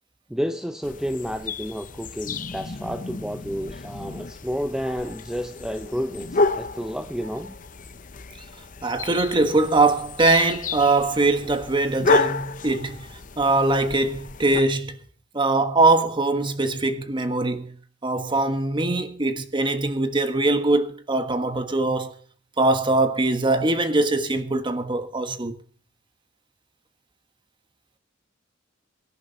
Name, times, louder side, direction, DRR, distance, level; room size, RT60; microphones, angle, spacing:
voice 1, 0.3-7.5, equal, 5° right, 0.6 m, -30 dB
sound 1, 0.8-14.6, left 3 dB, 40° left, 0.8 m, -30 dB
voice 2, 8.8-13.1 13.4-15.0 15.3-17.7 18.0-22.1 22.6-25.5, right 2 dB, 25° right, 1.4 m, -22 dB
23.5 x 11.0 x 4.2 m
head